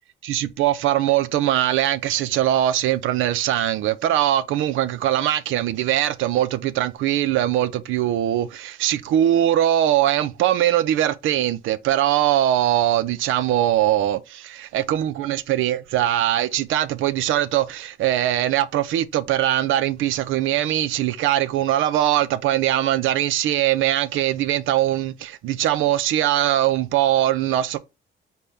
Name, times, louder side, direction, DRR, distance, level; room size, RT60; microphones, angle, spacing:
voice 1, 0.2-27.8, right 12 dB, 85° right, 0.5 m, -21 dB
4.2 x 3.3 x 3.4 m
cardioid pair, 90°, 20 cm